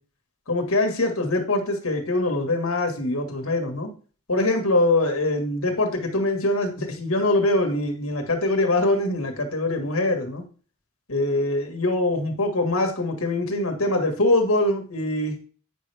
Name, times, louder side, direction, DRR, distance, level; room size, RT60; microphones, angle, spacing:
voice 1, 0.5-3.9 4.3-10.4 11.1-15.3, left 2 dB, 80° left, 3 dB, 1.7 m, -23 dB
9.0 x 5.7 x 3.4 m, 0.40 s
head